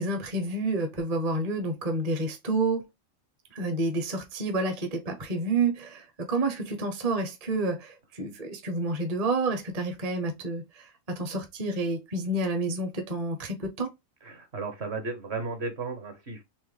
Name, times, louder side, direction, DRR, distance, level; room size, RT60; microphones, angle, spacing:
voice 1, 0.0-2.8 3.5-13.9, right 2 dB, 35° right, 0.8 m, -29 dB
voice 2, 14.2-16.4, right 3 dB, 50° right, 1.3 m, -34 dB
4.5 x 3.1 x 3.2 m
omnidirectional pair, 1.5 m